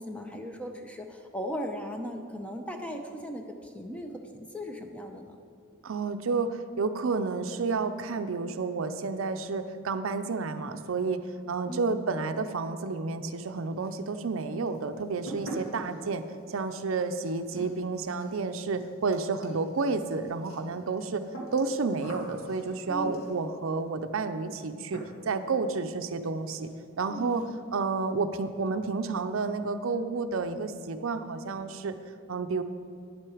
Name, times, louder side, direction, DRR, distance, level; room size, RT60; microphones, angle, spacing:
voice 1, 0.0-5.4 11.7-12.0 22.9-23.2 27.1-27.7, equal, 5° left, 3 dB, 0.6 m, -38 dB
voice 2, 5.8-11.2 11.5-16.2 16.5-21.2 21.5-25.0 25.3-26.7 27.0-27.4 27.7-31.9 32.3-32.6, right 4 dB, 75° right, 10 dB, 0.5 m, -30 dB
sound 1, 13.8-14.4 14.7-23.6 24.5-24.7 24.9-25.4 25.7-25.8 26.2-26.3 26.5-26.7 27.0-27.5, right 1 dB, 80° left, 2.0 m, -44 dB
9.6 x 7.6 x 4.9 m, 2.4 s
head